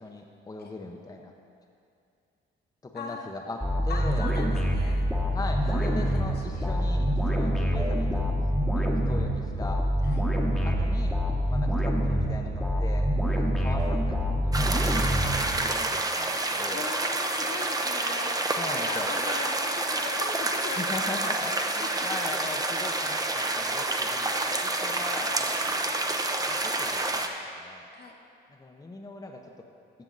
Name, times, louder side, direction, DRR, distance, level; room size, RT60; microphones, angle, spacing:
voice 1, 0.0-1.3 2.8-4.3 5.3-8.3 8.8-9.8 10.6-11.2 11.4-14.2 14.4-16.8 18.6-19.1 20.8-25.8 26.5-27.3 27.6-27.9 28.5-29.7, left 2 dB, 20° left, 1 dB, 0.8 m, -40 dB
voice 2, 2.9-3.3 3.9-5.0 5.6-6.7 7.0-7.2 10.0-10.3 16.7-20.8 21.4-22.9 24.3-24.6 25.4-25.5 27.9-28.2, left 4 dB, 55° left, 1 dB, 1.3 m, -40 dB
sound 1, 3.6-15.9, equal, ahead, 1.1 m, -26 dB
sound 2, 14.5-27.3, right 2 dB, 20° right, 0.7 m, -28 dB
15.0 x 6.0 x 4.0 m, 2.5 s
cardioid pair, 90°, 20 cm